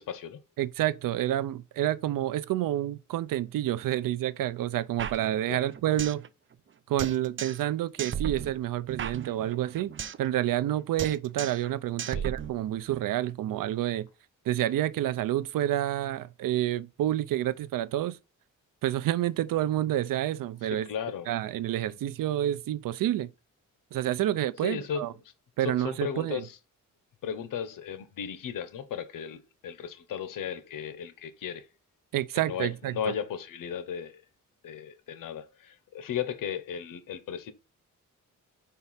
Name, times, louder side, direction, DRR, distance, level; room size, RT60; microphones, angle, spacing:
voice 1, 0.0-0.4 5.5-5.6 12.1-12.3 20.6-21.3 24.6-25.1 25.6-26.6 27.2-31.7 32.3-34.2 34.6-37.5, left 8 dB, 80° left, 1.0 m, -36 dB
voice 2, 0.6-6.2 6.9-9.9 10.2-14.1 14.5-18.2 18.8-20.9 21.3-23.3 23.9-25.1 25.6-26.4 32.1-33.1, right 13 dB, 90° right, 0.6 m, -29 dB
sound 1, 5.0-6.3 6.5-6.6 7.0-7.7 8.0-10.3 10.5-10.7 11.0-11.7 12.0-13.0, right 8 dB, 40° right, 0.5 m, -36 dB
5.3 x 4.6 x 5.6 m
wide cardioid pair, 125°, 32 cm